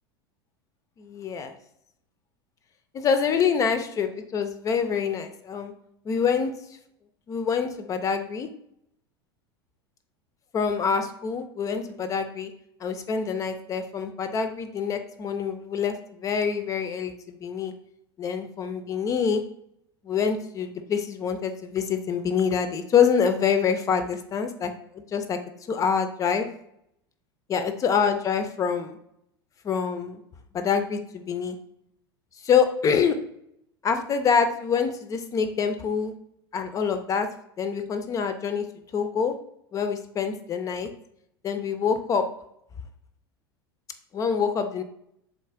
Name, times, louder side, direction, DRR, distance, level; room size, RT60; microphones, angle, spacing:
voice 1, 1.0-1.5 2.9-5.7 6.1-6.5 7.3-8.5 10.5-12.5 12.8-17.7 18.2-19.4 20.0-25.4 25.7-26.5 27.5-29.0 29.6-30.2 30.5-31.6 32.4-33.2 33.8-36.1 36.5-37.3 37.6-38.6 38.9-39.3 39.7-40.9 41.4-42.3 44.1-44.8, left 6 dB, 25° left, 8 dB, 0.3 m, -26 dB
3.8 x 2.3 x 3.5 m, 0.74 s
figure-of-eight pair, 80°, 13 cm